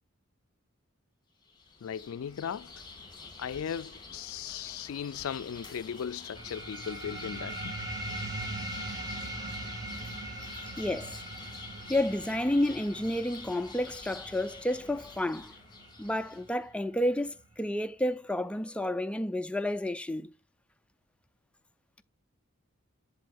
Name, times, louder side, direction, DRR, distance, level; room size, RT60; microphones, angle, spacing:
sound 1, 1.4-16.6, left 4 dB, 20° left, 2.2 m, -48 dB
voice 1, 1.8-2.7 3.4-7.8, left 8 dB, 75° left, 0.4 m, -37 dB
sound 2, 6.4-17.4, right 1 dB, 20° right, 1.7 m, -41 dB
voice 2, 10.5-11.2 11.9-15.5 16.0-20.3, left 1 dB, 5° left, 0.4 m, -30 dB
7.7 x 7.5 x 2.5 m
head